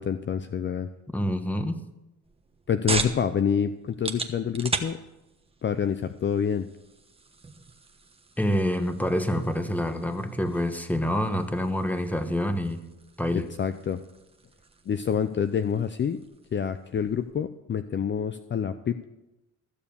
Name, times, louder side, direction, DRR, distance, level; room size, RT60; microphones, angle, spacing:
voice 1, 0.0-0.9 2.7-5.0 5.6-6.7 13.6-14.0 14.9-16.2 16.5-19.0, left 7 dB, 40° left, 10 dB, 0.6 m, -27 dB
voice 2, 1.1-1.8 8.4-12.8 13.2-13.5, equal, 5° left, 8 dB, 1.3 m, -27 dB
sound 1, 2.2-17.4, right 3 dB, 20° right, 1.2 m, -39 dB
15.0 x 7.0 x 7.1 m, 0.98 s
cardioid pair, 90°, 30 cm